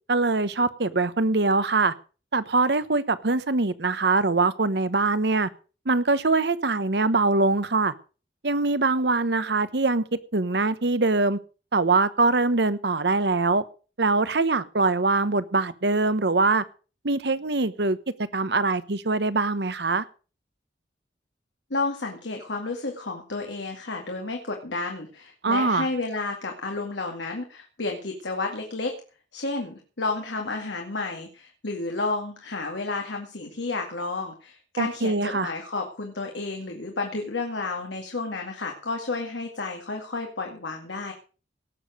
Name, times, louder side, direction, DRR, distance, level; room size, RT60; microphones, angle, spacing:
voice 1, 0.1-1.9 2.3-5.5 5.9-7.9 8.4-10.0 10.3-11.4 11.7-13.6 14.0-16.6 17.0-18.0 18.3-20.0 25.4-25.9 34.8-35.5, right 3 dB, 65° right, 1.0 m, -23 dB
voice 2, 21.7-28.9 29.3-41.1, left 3 dB, 85° left, 2.2 m, -31 dB
18.0 x 7.1 x 6.4 m
head